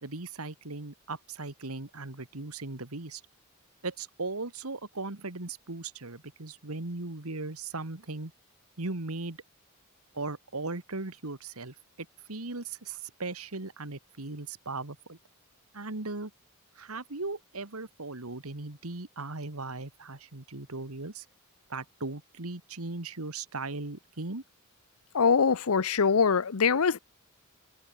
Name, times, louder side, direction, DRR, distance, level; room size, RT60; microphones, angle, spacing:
voice 1, 0.0-3.2 3.8-8.3 8.8-9.4 10.1-15.2 15.7-16.3 16.8-21.2 21.7-24.4, right 3 dB, 85° right, 2.1 m, -38 dB
voice 2, 25.1-27.0, left 5 dB, 80° left, 0.7 m, -23 dB
head